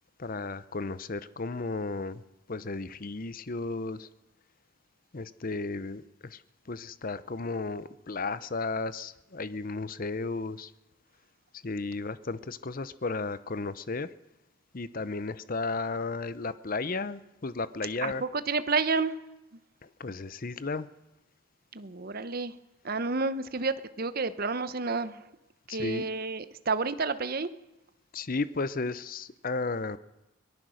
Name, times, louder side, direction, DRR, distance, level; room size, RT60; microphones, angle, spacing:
voice 1, 0.2-2.2 2.5-4.1 5.1-6.4 6.7-10.7 11.6-14.1 14.7-18.2 20.0-20.9 25.7-26.1 28.1-30.0, left 3 dB, 40° left, 15 dB, 0.7 m, -34 dB
voice 2, 18.0-19.1 21.7-22.5 22.8-25.3 25.7-27.5, right 4 dB, 45° right, 13 dB, 0.9 m, -30 dB
23.5 x 18.5 x 6.4 m, 0.96 s
head